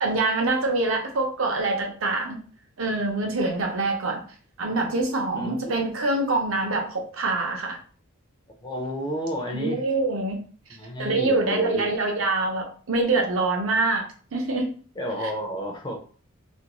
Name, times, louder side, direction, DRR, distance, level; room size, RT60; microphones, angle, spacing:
voice 1, 0.0-2.4 2.8-4.2 4.6-7.8 9.5-10.4 11.0-14.1 14.3-14.7, right 2 dB, 70° right, 3 dB, 0.6 m, -25 dB
voice 2, 5.3-5.7 8.6-9.8 10.8-11.9 15.0-16.0, equal, 20° left, 2 dB, 0.4 m, -31 dB
2.5 x 2.2 x 2.9 m, 0.42 s
head